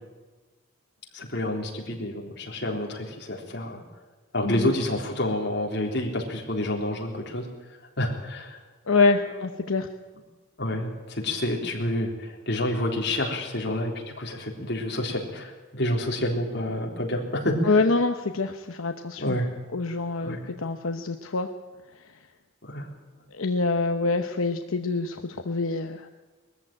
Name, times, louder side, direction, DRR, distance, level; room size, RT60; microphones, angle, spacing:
voice 1, 1.1-3.8 4.3-7.5 8.0-8.6 9.3-9.4 10.6-17.8 19.2-19.5 20.2-20.4 22.7-22.9, left 1 dB, 55° left, 0 dB, 3.7 m, -28 dB
voice 2, 4.4-4.7 8.9-9.9 17.7-19.4 19.7-21.5 23.4-26.1, left 3 dB, 85° left, 6 dB, 0.9 m, -25 dB
21.0 x 14.0 x 9.0 m, 1.3 s
head